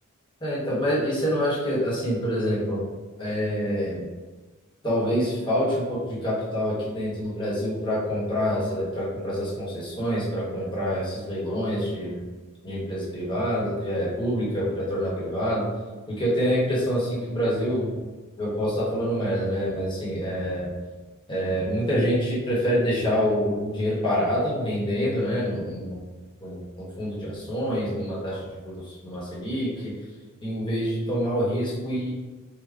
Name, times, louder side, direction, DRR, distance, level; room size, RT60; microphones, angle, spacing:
voice 1, 0.4-2.8 3.2-4.1 4.8-12.2 12.6-15.7 16.1-17.9 18.4-20.7 21.3-26.0 26.4-29.9 30.4-32.1, equal, 20° left, -6 dB, 1.0 m, -26 dB
3.3 x 2.2 x 3.6 m, 1.3 s
head